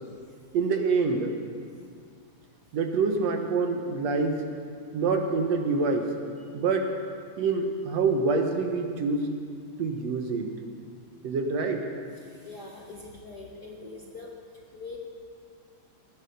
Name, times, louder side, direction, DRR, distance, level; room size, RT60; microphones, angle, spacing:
voice 1, 0.5-1.3 2.7-4.5 4.9-6.1 6.5-6.9 7.4-9.3 9.8-10.5 11.2-11.9, right 4 dB, 65° right, 4 dB, 2.1 m, -26 dB
voice 2, 12.1-14.3 14.7-15.0, left 3 dB, 50° left, -1 dB, 1.3 m, -43 dB
20.5 x 9.7 x 6.7 m, 2.2 s
omnidirectional pair, 3.4 m